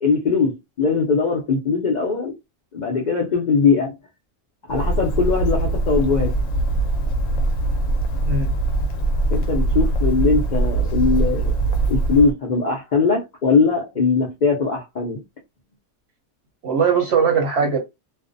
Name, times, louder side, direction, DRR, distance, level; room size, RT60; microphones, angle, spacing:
voice 1, 0.0-2.3 2.7-4.0 4.7-6.3 9.3-11.5 11.9-15.2, left 4 dB, 85° left, 0.4 m, -20 dB
Bird, 4.7-12.3, right 2 dB, 70° left, 0.9 m, -22 dB
voice 2, 8.3-8.6 16.6-17.8, right 6 dB, 60° right, 0.8 m, -19 dB
2.5 x 2.0 x 2.5 m
omnidirectional pair, 1.5 m